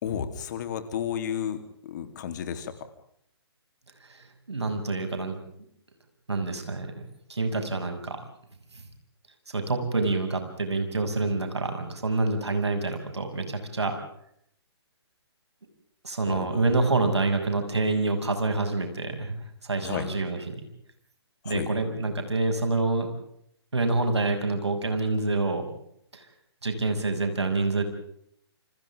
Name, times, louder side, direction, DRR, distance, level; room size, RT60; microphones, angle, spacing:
voice 1, 0.0-2.9 16.2-16.8 19.8-20.1 21.4-21.7, left 8 dB, 45° left, 8 dB, 3.3 m, -33 dB
voice 2, 4.0-5.4 6.3-7.0 7.3-8.2 8.7-8.8 9.5-14.0 16.0-20.6 21.4-23.1 23.7-25.6 26.1-26.2 26.6-27.8, right 3 dB, 80° right, 5 dB, 6.6 m, -27 dB
29.5 x 27.0 x 3.7 m, 0.69 s
figure-of-eight pair, 135°, 14 cm